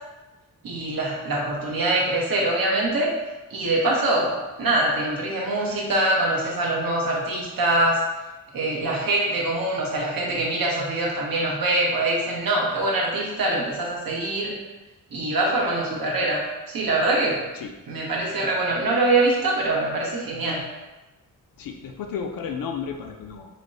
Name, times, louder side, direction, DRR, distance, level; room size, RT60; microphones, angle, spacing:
voice 1, 0.6-3.1 3.5-8.0 8.5-14.6 15.1-17.5 17.9-20.6, right 2 dB, 85° right, -3 dB, 0.9 m, -24 dB
voice 2, 21.6-23.5, left 6 dB, 80° left, 4 dB, 0.5 m, -33 dB
5.0 x 2.1 x 2.5 m, 1.1 s
wide cardioid pair, 125°, 34 cm